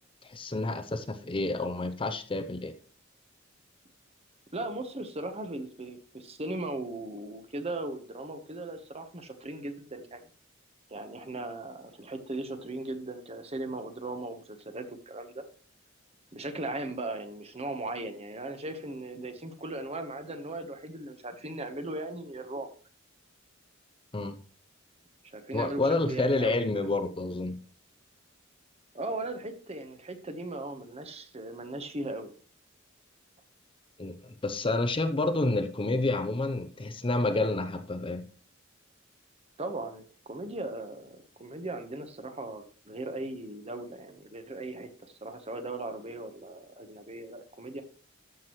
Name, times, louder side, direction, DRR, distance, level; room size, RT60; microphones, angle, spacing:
voice 1, 0.2-2.7 24.1-24.4 25.5-27.6 34.0-38.2, left 2 dB, 25° left, 9 dB, 0.7 m, -29 dB
voice 2, 4.5-10.3 10.9-15.5 16.3-22.7 25.2-26.9 28.9-32.3 39.6-47.8, right 2 dB, 30° right, 8 dB, 1.2 m, -38 dB
13.5 x 6.1 x 3.1 m, 0.40 s
head